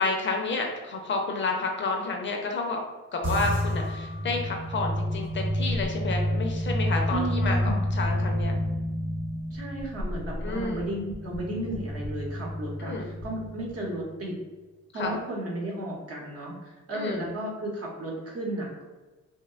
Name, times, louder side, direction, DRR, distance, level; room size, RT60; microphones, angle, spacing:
voice 1, 0.0-2.8 3.1-8.5 10.4-10.8 12.8-13.1 14.9-15.2 16.9-17.3, left 3 dB, 40° left, 2 dB, 0.4 m, -30 dB
sound 1, 3.2-13.8, equal, 20° right, 1.0 m, -29 dB
voice 2, 7.1-7.8 9.5-14.3 14.9-18.8, right 1 dB, 50° right, -3 dB, 0.9 m, -34 dB
2.7 x 2.1 x 2.3 m, 1.2 s
cardioid pair, 90°, 30 cm